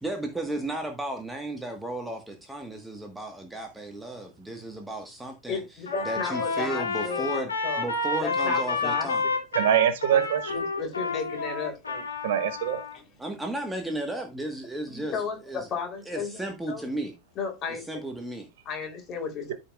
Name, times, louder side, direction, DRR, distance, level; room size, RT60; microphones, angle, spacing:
voice 1, 0.0-5.6 6.0-7.5 7.8-9.2 13.2-15.7 16.1-17.1 17.7-18.5, right 1 dB, 5° right, 1.5 m, -34 dB
voice 2, 5.5-7.9 8.2-9.4 10.1-10.2 10.5-12.0 14.9-16.4 16.7-16.8 17.4-18.0 18.7-19.5, left 5 dB, 30° left, 3.6 m, -34 dB
Trumpet, 5.8-13.0, left 3 dB, 75° left, 2.3 m, -30 dB
voice 3, 9.5-10.6 12.2-12.8, right 10 dB, 55° right, 1.0 m, -24 dB
13.5 x 5.2 x 2.4 m
figure-of-eight pair, 90°, 0 cm